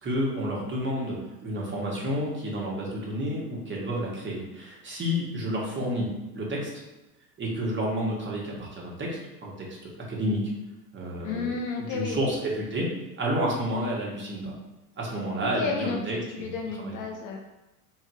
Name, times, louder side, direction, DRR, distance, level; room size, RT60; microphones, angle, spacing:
voice 1, 0.0-6.7 7.4-10.4 10.9-11.6 11.9-12.9 13.2-14.5 15.0-16.5 16.8-16.9, equal, 25° right, -3 dB, 1.4 m, -30 dB
voice 2, 11.2-12.2 15.4-17.4, left 5 dB, 40° left, 2 dB, 0.7 m, -32 dB
3.8 x 2.7 x 4.7 m, 1.0 s
hypercardioid pair, 85°, 48 cm